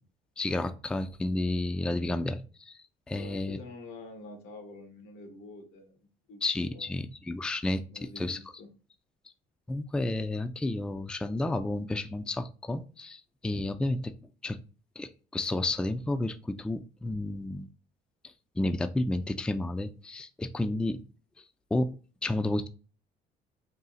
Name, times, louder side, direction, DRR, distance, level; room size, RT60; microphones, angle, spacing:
voice 1, 0.4-2.8 3.1-3.6 6.4-7.8 8.2-8.4 9.7-14.1 14.4-14.6 15.0-17.7 18.2-21.0 21.4-21.5 21.7-22.0 22.2-22.7, left 2 dB, 5° left, 0.3 m, -31 dB
voice 2, 3.1-6.4 6.7-7.0 7.9-8.7, left 3 dB, 90° left, 1.3 m, -47 dB
3.9 x 2.4 x 3.9 m
cardioid pair, 110°, 17 cm